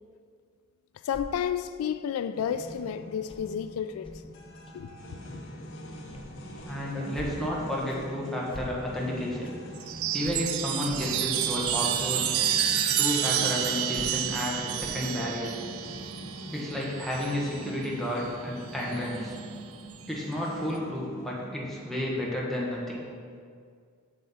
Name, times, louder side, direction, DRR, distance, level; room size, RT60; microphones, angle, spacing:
voice 1, 1.0-4.1 4.7-4.9, left 8 dB, 90° left, 0.3 m, -31 dB
sound 1, 1.1-1.3 2.7-2.8 3.3-3.4 4.0-4.2 4.7-4.8 5.2-5.4 6.1-6.3 6.5-6.7 7.1-7.3 7.9-8.0 8.5-8.7 9.4-9.5 10.2-10.4 10.9-11.0 11.6-11.8 12.3-12.4 13.2-13.3 13.9-14.1 14.8-15.0, left 1 dB, 25° left, 0.7 m, -44 dB
sound 2, 2.3-22.1, equal, 65° left, 1.1 m, -43 dB
voice 2, 6.6-9.5 10.1-12.3 13.0-15.5 16.5-19.3 20.1-23.0, left 1 dB, ahead, 1.3 m, -31 dB
Chime, 9.8-17.6 18.8-19.4, right 10 dB, 75° right, 0.5 m, -29 dB
7.3 x 6.7 x 4.2 m
head